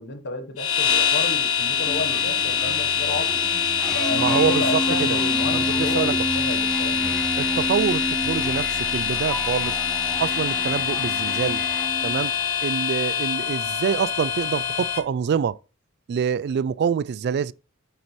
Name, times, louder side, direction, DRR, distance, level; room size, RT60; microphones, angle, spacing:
voice 1, 0.0-3.3 3.9-7.1, left 3 dB, 55° left, 1.2 m, -31 dB
sound 1, 0.6-15.0, left 7 dB, 85° left, 1.5 m, -24 dB
sound 2, 1.6-12.5, equal, 5° left, 0.5 m, -30 dB
voice 2, 4.1-5.2 5.5-6.1 7.4-9.8 10.2-11.6 12.0-12.3 12.6-15.6 16.1-17.5, right 7 dB, 50° right, 0.3 m, -26 dB
8.7 x 6.8 x 3.2 m
head